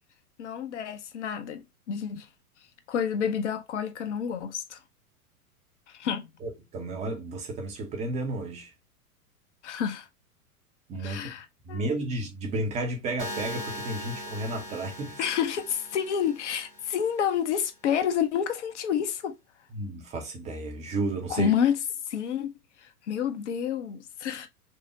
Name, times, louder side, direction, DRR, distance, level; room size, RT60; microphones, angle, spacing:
voice 1, 0.4-2.3 2.9-4.8 5.9-6.3 9.6-10.1 11.0-11.9 15.2-19.3 21.3-22.5 22.8-24.5, left 8 dB, 50° left, 0.7 m, -29 dB
voice 2, 6.4-8.7 10.9-11.3 11.7-15.2 19.7-21.5, right 2 dB, 15° right, 0.5 m, -32 dB
sound 1, 13.2-17.2, equal, 90° right, 2.2 m, -40 dB
5.5 x 2.1 x 2.7 m
figure-of-eight pair, 100°, 46 cm